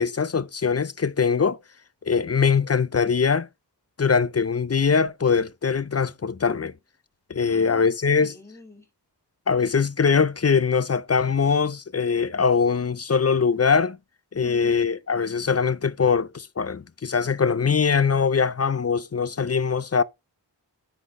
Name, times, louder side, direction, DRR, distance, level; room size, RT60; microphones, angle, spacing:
voice 1, 0.0-1.6 2.1-3.5 4.0-6.7 7.3-8.4 9.5-14.0 14.3-20.0, left 5 dB, 35° left, 0.4 m, -22 dB
voice 2, 7.4-7.8 8.2-8.8 14.4-14.7, left 2 dB, 5° left, 2.0 m, -44 dB
9.3 x 4.1 x 3.6 m
wide cardioid pair, 45°, 43 cm